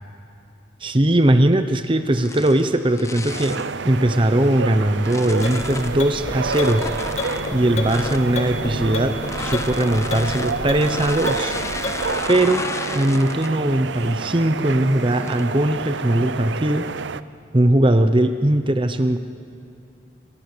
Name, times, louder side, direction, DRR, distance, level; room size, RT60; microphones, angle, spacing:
voice 1, 0.8-3.6 3.8-6.8 7.5-11.5 12.3-12.7 12.9-16.9 17.5-19.2, right 1 dB, 25° right, 9 dB, 0.8 m, -19 dB
sound 1, 2.1-3.7 4.4-6.0 6.4-8.3 9.2-13.6 14.1-14.4 15.0-15.6, left 3 dB, 15° left, 0.9 m, -33 dB
sound 2, 3.3-17.2, right 4 dB, 70° right, 0.6 m, -29 dB
sound 3, 5.3-12.3, left 2 dB, 35° left, 2.6 m, -31 dB
28.5 x 24.5 x 6.8 m, 2.5 s
head